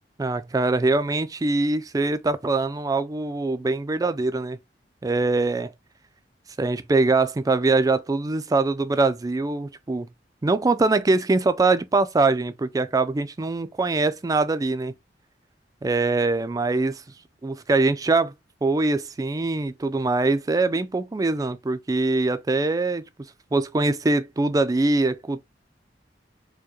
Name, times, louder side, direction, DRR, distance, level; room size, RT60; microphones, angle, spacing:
voice 1, 0.2-4.6 5.0-5.7 6.6-10.1 10.4-14.9 15.8-17.0 17.4-18.3 18.6-23.0 23.5-25.5, right 3 dB, 20° right, 0.3 m, -23 dB
4.5 x 2.1 x 3.0 m
head